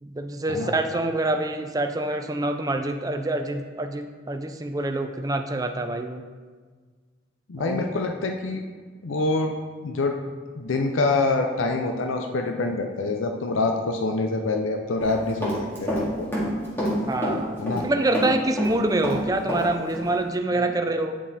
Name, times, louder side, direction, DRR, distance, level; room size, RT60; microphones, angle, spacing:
voice 1, 0.0-6.2 7.6-7.8 17.1-21.2, right 2 dB, 20° right, 5 dB, 0.5 m, -26 dB
voice 2, 7.5-8.6 9.0-9.5 9.8-10.2 10.6-15.5 15.8-16.3 17.6-17.9 20.6-20.7, left 3 dB, 90° left, 4 dB, 0.6 m, -25 dB
Run, 15.0-16.0 16.3-17.9 18.1-19.7 19.9-20.1, equal, 10° left, 2.1 m, -27 dB
8.5 x 5.8 x 4.2 m, 1.5 s
head